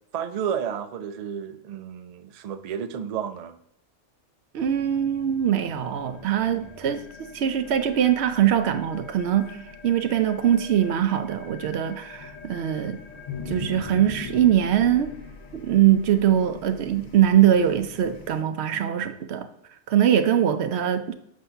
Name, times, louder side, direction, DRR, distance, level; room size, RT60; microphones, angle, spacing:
voice 1, 0.1-3.6 18.7-19.1, right 8 dB, 60° right, 0.4 m, -32 dB
voice 2, 4.5-9.6 9.8-13.0 13.5-15.1 15.5-19.5 19.9-21.1, right 10 dB, 75° right, 0.9 m, -22 dB
sound 1, 4.6-18.4, left 5 dB, 45° left, 0.7 m, -42 dB
7.7 x 2.7 x 5.5 m
omnidirectional pair, 1.1 m